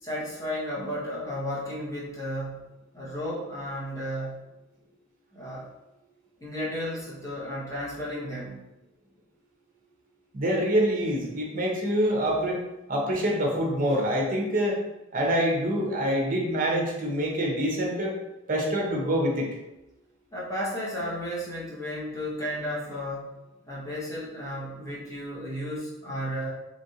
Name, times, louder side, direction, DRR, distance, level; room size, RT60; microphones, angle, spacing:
voice 1, 0.0-2.7 2.9-4.4 5.3-5.7 6.4-8.6 20.3-23.2 23.7-26.5, equal, 15° left, -7 dB, 0.9 m, -33 dB
voice 2, 10.3-12.6 12.9-14.8 15.1-18.1 18.5-19.6, equal, 45° right, -1 dB, 0.6 m, -25 dB
3.1 x 2.5 x 2.7 m, 0.97 s
head